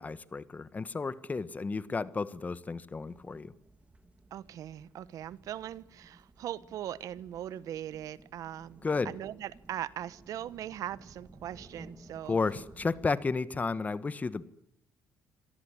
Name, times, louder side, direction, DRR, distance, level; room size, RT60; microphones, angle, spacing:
voice 1, 0.0-3.5 8.8-9.2 12.2-14.5, left 4 dB, 25° left, 17 dB, 1.3 m, -32 dB
sound 1, 3.1-13.1, right 2 dB, 20° right, 2.4 m, -55 dB
voice 2, 4.3-12.4, right 11 dB, 65° right, 18 dB, 1.2 m, -40 dB
26.5 x 18.0 x 10.0 m, 0.76 s
cardioid pair, 100°, 6 cm